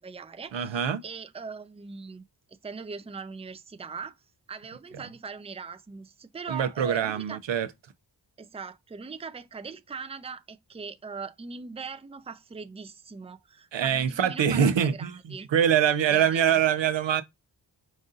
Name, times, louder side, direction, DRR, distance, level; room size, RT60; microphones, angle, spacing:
voice 1, 0.0-2.2 2.5-4.2 4.5-7.4 8.4-15.5 16.1-16.6, right 5 dB, 15° right, 0.5 m, -40 dB
voice 2, 0.5-1.0 6.5-7.7 13.7-17.2, right 8 dB, 90° right, 0.7 m, -24 dB
5.2 x 2.6 x 3.7 m
wide cardioid pair, 65°, 43 cm